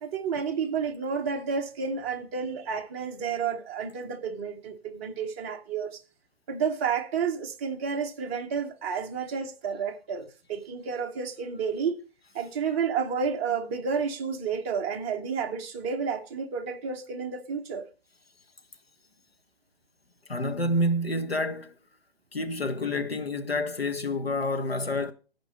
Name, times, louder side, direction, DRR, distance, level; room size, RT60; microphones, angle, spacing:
voice 1, 0.0-6.0 6.5-12.0 12.3-17.9, right 6 dB, 15° right, 0.7 m, -31 dB
voice 2, 20.3-21.7 22.3-25.1, left 1 dB, 80° left, 1.5 m, -28 dB
14.5 x 5.1 x 5.2 m
figure-of-eight pair, 140°, 30 cm